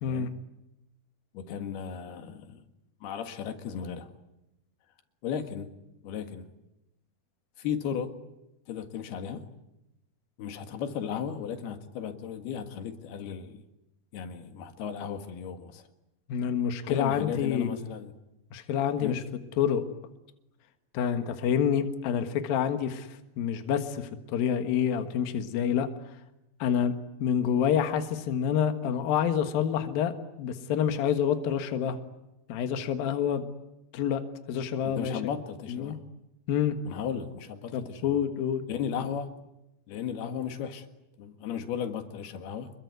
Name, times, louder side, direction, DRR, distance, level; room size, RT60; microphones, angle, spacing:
voice 1, 1.3-2.6 3.0-4.1 5.2-5.7 6.0-6.5 7.6-8.1 8.7-9.5 10.4-13.6 14.1-15.8 16.8-18.1 19.0-19.2 34.8-36.0 36.9-38.2 38.7-39.3 39.9-40.9 41.2-42.7, left 8 dB, 90° left, 3.8 m, -35 dB
voice 2, 16.3-17.8 18.5-19.2 19.6-19.8 20.9-25.9 26.6-26.9 27.2-32.0 32.5-33.4 33.9-34.2 34.5-35.2 35.7-35.9 36.5-36.8 37.7-38.6, left 8 dB, 70° left, 3.3 m, -27 dB
28.0 x 22.0 x 9.5 m
omnidirectional pair, 4.4 m